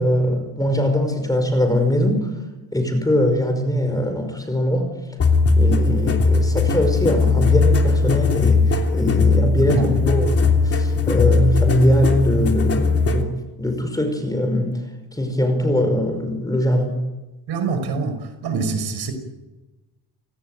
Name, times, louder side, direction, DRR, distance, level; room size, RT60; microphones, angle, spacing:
voice 1, 0.0-2.3 2.7-4.9 5.6-13.3 13.6-14.8 15.1-16.9, left 1 dB, 10° left, 7 dB, 5.4 m, -21 dB
sound 1, 5.2-13.2, left 4 dB, 30° left, 3.2 m, -18 dB
voice 2, 9.5-9.9 17.5-19.1, right 4 dB, 60° right, 8 dB, 5.9 m, -25 dB
29.0 x 19.0 x 9.3 m, 1.1 s
cardioid pair, 140°, 44 cm